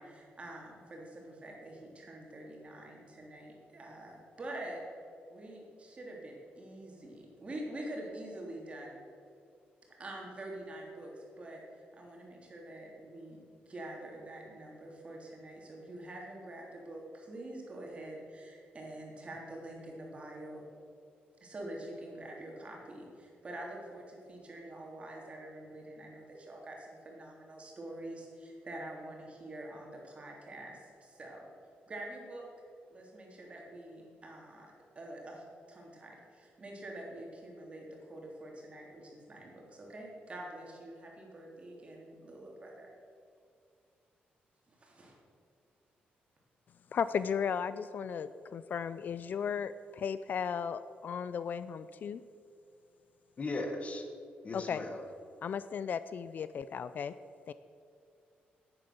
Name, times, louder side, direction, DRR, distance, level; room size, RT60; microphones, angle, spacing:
voice 1, 0.0-4.8 5.3-9.0 10.0-20.6 21.4-31.5 31.9-32.5 32.9-42.9 44.7-45.1, right 1 dB, 35° right, -2 dB, 3.2 m, -46 dB
voice 2, 46.9-52.2 54.5-54.8 55.4-57.1 57.5-57.6, left 7 dB, 55° left, 14 dB, 0.4 m, -35 dB
voice 3, 53.4-54.1 54.4-55.0, left 2 dB, 40° left, 5 dB, 1.4 m, -37 dB
10.5 x 9.0 x 6.8 m, 2.4 s
cardioid pair, 105°, 4 cm